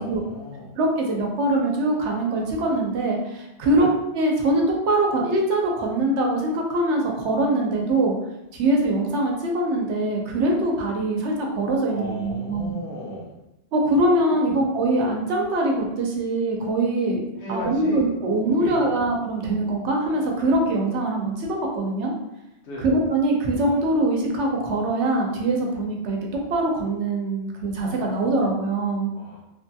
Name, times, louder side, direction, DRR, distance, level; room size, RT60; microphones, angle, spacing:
voice 1, 0.0-0.7 3.8-3.9 11.9-13.4 14.3-14.6 17.4-18.1 18.6-19.0 22.6-22.9 29.1-29.5, equal, 75° left, -4 dB, 1.1 m, -35 dB
voice 2, 0.8-3.9 4.1-8.2 8.5-12.7 13.7-17.2 17.5-22.1 22.8-26.2 26.5-29.1, right 2 dB, 90° right, 0 dB, 0.9 m, -23 dB
3.1 x 2.7 x 2.2 m, 0.89 s
omnidirectional pair, 1.1 m